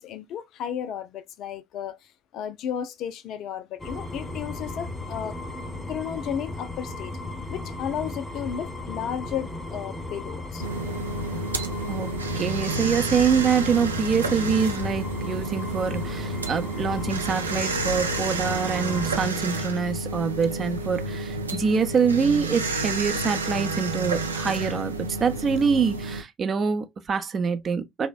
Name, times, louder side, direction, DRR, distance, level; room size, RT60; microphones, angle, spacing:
voice 1, 0.0-5.4 5.9-7.1 7.5-10.7, left 9 dB, 55° left, 0.4 m, -33 dB
sound 1, 3.8-19.3, left 2 dB, 15° left, 0.7 m, -36 dB
sound 2, 10.6-26.2, right 2 dB, 90° right, 0.3 m, -30 dB
voice 2, 11.9-28.1, right 6 dB, 40° right, 0.5 m, -25 dB
3.2 x 2.1 x 2.2 m
figure-of-eight pair, 60°, 0 cm